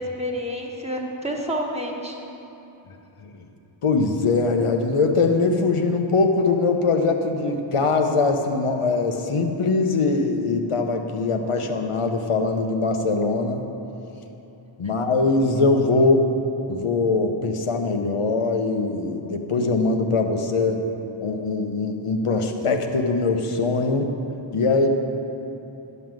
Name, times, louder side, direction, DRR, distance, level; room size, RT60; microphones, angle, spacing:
voice 1, 0.0-2.2, equal, 15° right, 0 dB, 1.3 m, -29 dB
voice 2, 3.8-13.6 14.8-16.3 16.7-20.8 21.2-24.1 24.5-24.9, left 3 dB, 85° left, 5 dB, 0.9 m, -22 dB
11.0 x 5.4 x 7.6 m, 3.0 s
wide cardioid pair, 60°, 50 cm